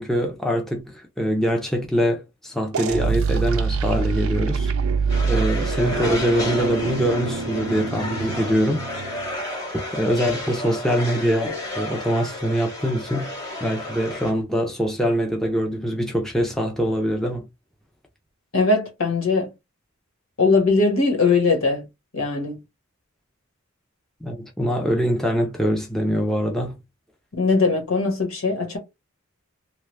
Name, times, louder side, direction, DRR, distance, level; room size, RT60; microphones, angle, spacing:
voice 1, 0.0-4.7 5.2-8.9 9.9-17.5 24.2-26.8, equal, ahead, 0.5 m, -23 dB
sound 1, 2.7-9.4, right 5 dB, 75° right, 0.5 m, -25 dB
sound 2, 5.1-14.3, left 1 dB, 20° left, 1.1 m, -32 dB
voice 2, 18.5-19.5 20.4-21.8 22.1-22.6 27.3-28.8, left 3 dB, 75° left, 1.2 m, -20 dB
3.1 x 2.3 x 3.2 m
head